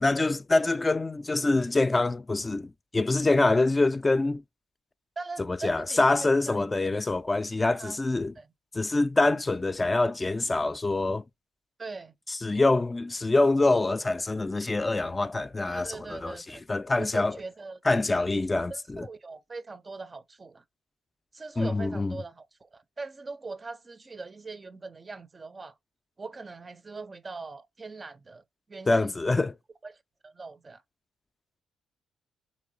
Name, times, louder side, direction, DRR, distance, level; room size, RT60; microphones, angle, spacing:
voice 1, 0.0-4.4 5.5-8.3 8.7-11.2 12.3-17.4 17.8-19.1 21.6-22.2 28.9-29.6, left 2 dB, 25° left, 0.3 m, -25 dB
voice 2, 5.2-7.0 7.6-8.0 8.4-8.5 11.8-12.1 15.6-16.6 16.9-17.8 18.7-20.6 21.3-25.7 26.2-28.4 28.7-29.4 29.8-29.9 30.2-30.8, right 3 dB, 35° right, 0.4 m, -41 dB
3.1 x 3.0 x 3.8 m
hypercardioid pair, 50°, 0 cm